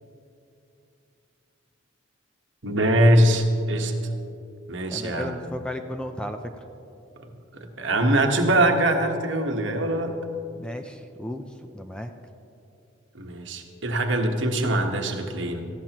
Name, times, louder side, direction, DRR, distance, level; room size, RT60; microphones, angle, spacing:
voice 1, 2.6-3.9 4.7-5.3 7.5-10.2 13.1-15.7, right 1 dB, 65° right, 3 dB, 1.3 m, -22 dB
voice 2, 4.9-6.4 10.6-11.4 11.7-12.1, left 1 dB, 5° left, 6 dB, 0.4 m, -34 dB
18.5 x 15.0 x 3.0 m, 2.7 s
head